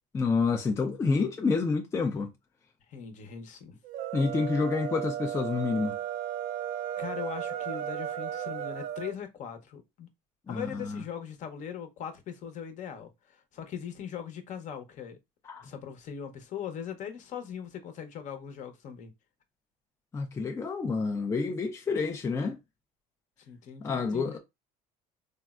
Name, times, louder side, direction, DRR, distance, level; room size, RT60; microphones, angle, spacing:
voice 1, 0.1-2.3 4.1-6.0 10.5-11.0 15.4-15.7 20.1-22.6 23.8-24.4, left 4 dB, 20° left, 0.4 m, -28 dB
voice 2, 2.9-3.8 7.0-10.1 10.5-15.2 15.6-19.1 23.5-24.4, left 8 dB, 50° left, 0.7 m, -40 dB
sound 1, 3.8-9.1, right 10 dB, 60° right, 0.4 m, -35 dB
3.4 x 2.0 x 2.3 m
cardioid pair, 110°, 16 cm